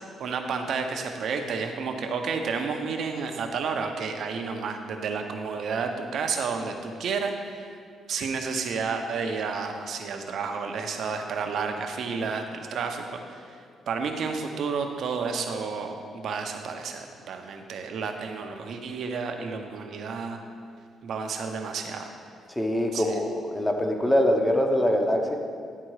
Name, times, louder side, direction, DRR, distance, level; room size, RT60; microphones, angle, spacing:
voice 1, 0.0-7.8 8.1-20.4 21.0-22.1 22.9-23.2, right 5 dB, 65° right, 5 dB, 0.7 m, -31 dB
voice 2, 22.6-25.4, equal, 10° left, 3 dB, 0.9 m, -23 dB
10.0 x 3.7 x 4.7 m, 2.2 s
cardioid pair, 90°, 0 cm